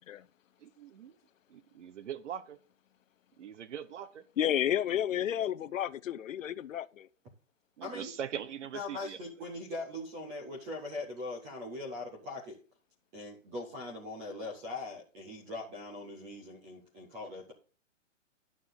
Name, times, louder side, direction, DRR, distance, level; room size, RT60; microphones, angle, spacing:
voice 1, 0.6-1.1 1.5-2.6 3.4-4.2 7.8-9.2, right 9 dB, 65° right, 1.1 m, -41 dB
voice 2, 4.4-7.1, left 10 dB, 90° left, 0.7 m, -31 dB
voice 3, 7.8-8.1 8.7-12.6 13.1-17.5, left 2 dB, 5° right, 0.4 m, -41 dB
11.0 x 6.3 x 3.9 m
hypercardioid pair, 155°, 38 cm